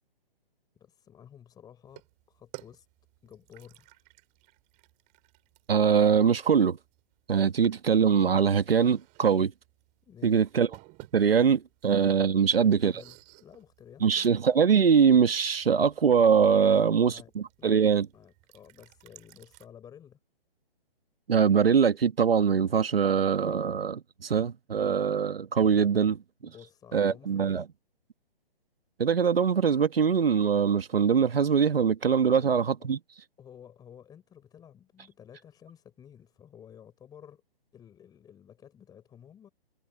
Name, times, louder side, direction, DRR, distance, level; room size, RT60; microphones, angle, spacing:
voice 1, 0.7-2.9 3.2-4.0 10.0-10.5 12.3-14.3 16.5-17.3 17.6-17.9 18.1-20.2 26.4-27.6 32.2-32.9 33.4-37.4 37.7-39.5, left 9 dB, 15° left, 4.7 m, -52 dB
sound 1, 1.8-19.7, right 26 dB, 25° right, 5.8 m, -56 dB
voice 2, 5.7-6.8 7.3-9.5 10.2-10.7 11.1-12.9 14.0-18.1 21.3-26.2 26.9-27.6 29.0-33.0, right 6 dB, 75° right, 1.6 m, -23 dB
hypercardioid pair, 140°, 29 cm